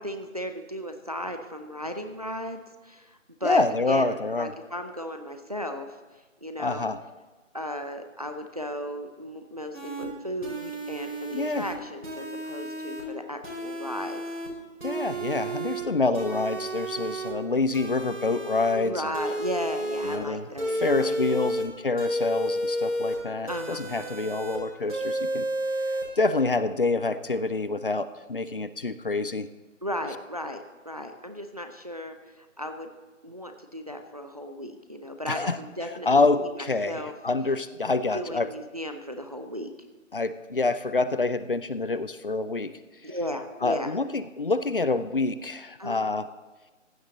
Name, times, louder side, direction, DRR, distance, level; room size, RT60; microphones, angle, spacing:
voice 1, 0.0-6.0 6.4-6.9 7.5-14.2 18.7-21.5 23.5-24.2 29.8-32.9 33.2-37.1 38.1-39.7 43.0-43.9 45.8-46.0, equal, 30° right, 7 dB, 0.6 m, -35 dB
voice 2, 3.4-4.5 6.6-7.0 11.3-11.7 14.8-19.1 20.0-25.5 26.2-29.5 35.3-35.6 36.1-38.5 40.1-42.7 43.6-46.3, left 3 dB, 45° left, 14 dB, 0.5 m, -27 dB
sound 1, 9.7-10.1 10.4-11.7 12.0-13.0 13.4-14.5 14.8-15.8 16.1-17.3 17.7-18.7 19.1-20.2 20.6-21.6 22.0-23.2 23.5-24.6 24.9-26.0, right 1 dB, 90° right, 5.1 m, -31 dB
15.5 x 10.0 x 3.9 m, 1.2 s
figure-of-eight pair, 160°, 39 cm